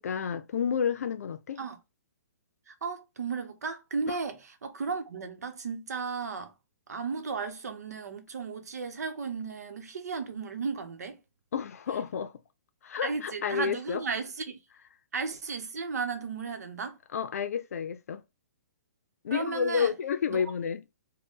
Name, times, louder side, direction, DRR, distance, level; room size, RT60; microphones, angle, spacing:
voice 1, 0.0-1.6 11.5-12.3 12.8-14.0 17.1-18.2 19.2-20.8, left 7 dB, 70° left, 0.5 m, -30 dB
voice 2, 2.7-6.5 6.9-11.2 13.0-14.6 15.1-17.0 19.3-19.9 20.3-20.5, right 5 dB, 85° right, 0.9 m, -35 dB
3.9 x 2.2 x 3.6 m
hypercardioid pair, 160°, 8 cm